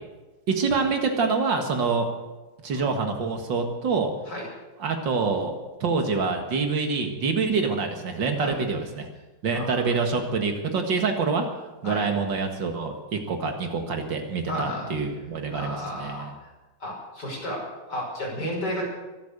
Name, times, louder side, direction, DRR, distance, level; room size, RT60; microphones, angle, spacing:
voice 1, 0.5-2.1 2.6-4.1 4.8-5.5 5.8-9.1 9.4-11.5 11.8-16.3, right 4 dB, 80° right, 4 dB, 2.6 m, -26 dB
voice 2, 9.5-9.8 11.8-12.1 14.5-14.9 15.5-16.5 16.8-18.9, equal, 65° left, -3 dB, 6.5 m, -33 dB
23.5 x 8.7 x 6.8 m, 1.1 s
omnidirectional pair, 2.0 m